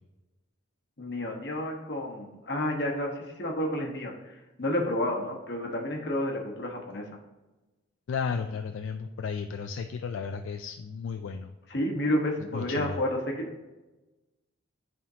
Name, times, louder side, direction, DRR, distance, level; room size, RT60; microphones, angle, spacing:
voice 1, 1.0-7.0 11.7-13.5, left 1 dB, 55° left, 0 dB, 1.1 m, -30 dB
voice 2, 8.1-11.5 12.5-13.0, left 5 dB, 75° left, 6 dB, 0.3 m, -34 dB
10.5 x 3.6 x 2.8 m, 1.1 s
head